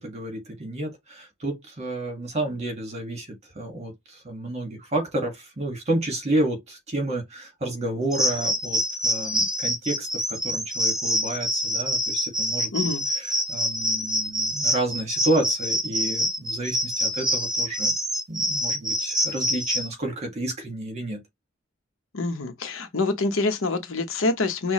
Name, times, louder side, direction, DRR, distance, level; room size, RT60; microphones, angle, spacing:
voice 1, 0.0-3.3 3.6-12.9 13.2-17.9 18.3-21.2, right 1 dB, 35° right, 1.7 m, -30 dB
sound 1, 8.1-19.9, equal, 5° right, 0.8 m, -26 dB
voice 2, 12.7-13.0 22.1-24.7, left 3 dB, 75° left, 0.9 m, -26 dB
5.6 x 2.2 x 3.0 m
head